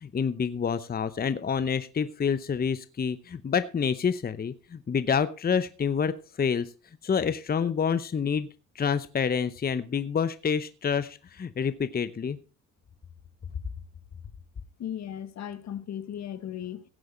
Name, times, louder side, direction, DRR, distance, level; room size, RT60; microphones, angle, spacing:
voice 1, 0.0-6.7 7.0-8.5 8.8-12.4, left 6 dB, 30° left, 0.8 m, -28 dB
voice 2, 14.8-16.8, left 10 dB, 60° left, 1.1 m, -36 dB
16.5 x 7.9 x 4.4 m
cardioid pair, 90°, 30 cm